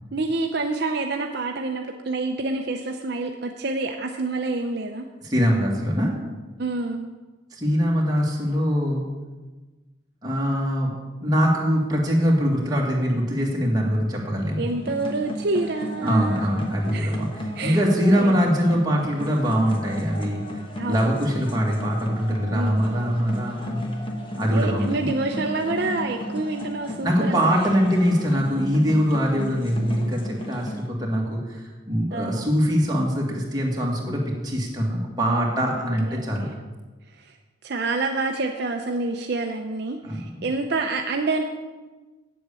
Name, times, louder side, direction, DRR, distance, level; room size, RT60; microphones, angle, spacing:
voice 1, 0.1-5.1 6.6-7.1 14.6-16.5 16.9-17.2 17.6-17.8 18.2-18.4 20.8-21.1 22.5-23.3 24.5-27.4 32.1-32.5 36.1-36.5 37.2-37.3 37.6-41.4, right 3 dB, 55° right, 4 dB, 0.6 m, -27 dB
voice 2, 5.2-6.1 7.5-9.1 10.2-10.9 11.2-14.7 16.0-20.4 20.9-23.8 24.4-25.1 27.0-36.5 40.0-40.5, equal, 20° right, -3 dB, 1.9 m, -23 dB
sound 1, 14.7-30.8, equal, 25° left, 1.2 m, -34 dB
8.7 x 7.8 x 6.9 m, 1.3 s
head